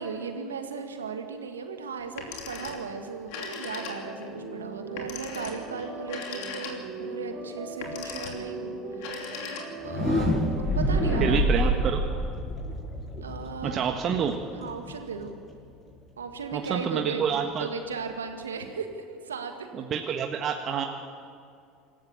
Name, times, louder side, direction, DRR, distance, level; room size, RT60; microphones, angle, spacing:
voice 1, 0.0-9.3 9.8-11.8 13.2-13.8 14.5-15.4 16.2-19.7, right 5 dB, 85° right, 6 dB, 1.8 m, -36 dB
Telephone, 2.0-2.9 3.2-4.3 5.0-7.1 7.7-8.5 8.9-10.0, left 5 dB, 60° left, 3.0 m, -39 dB
sound 1, 3.7-10.7, right 3 dB, 60° right, 4.0 m, -39 dB
sound 2, 9.7-15.6, equal, 30° left, 7.1 m, -27 dB
voice 2, 11.2-12.0 13.6-14.3 16.5-17.7 19.7-20.8, right 7 dB, 45° right, 4 dB, 1.4 m, -28 dB
25.5 x 14.5 x 7.0 m, 2.4 s
figure-of-eight pair, 70°, 0 cm